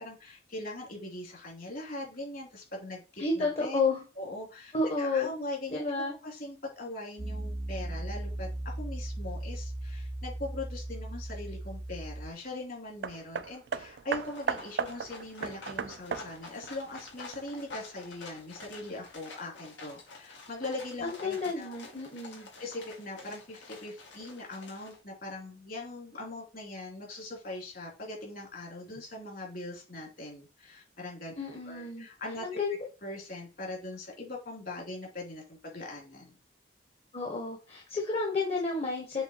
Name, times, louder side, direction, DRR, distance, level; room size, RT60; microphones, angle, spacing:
voice 1, 0.0-3.8 4.1-5.8 6.2-21.9 22.6-31.4 31.6-32.6 33.0-36.3, left 2 dB, 55° left, 0 dB, 2.9 m, -41 dB
voice 2, 3.2-4.0 4.7-5.3 5.7-6.1 21.0-22.5 31.4-32.1 32.4-32.8 37.1-39.2, left 3 dB, 35° left, 0 dB, 1.2 m, -31 dB
Piano, 7.2-12.3, right 1 dB, 15° right, 0.4 m, -37 dB
Hammer, 13.0-17.8 18.6-18.7, right 6 dB, 70° right, 0.4 m, -36 dB
sound 1, 14.2-25.0, left 3 dB, 85° left, 2.1 m, -49 dB
7.1 x 3.4 x 4.4 m, 0.31 s
head